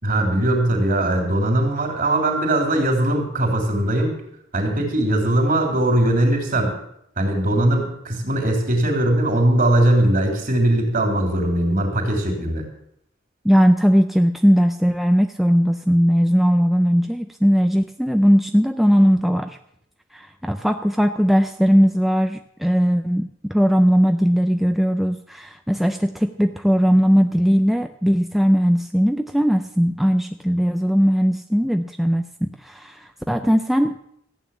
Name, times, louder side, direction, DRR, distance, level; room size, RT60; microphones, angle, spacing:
voice 1, 0.0-4.2 4.5-6.8 7.2-12.6, right 1 dB, 45° right, 3 dB, 3.6 m, -20 dB
voice 2, 13.4-19.6 20.1-34.1, equal, ahead, 6 dB, 0.5 m, -19 dB
14.5 x 9.0 x 7.3 m, 0.73 s
head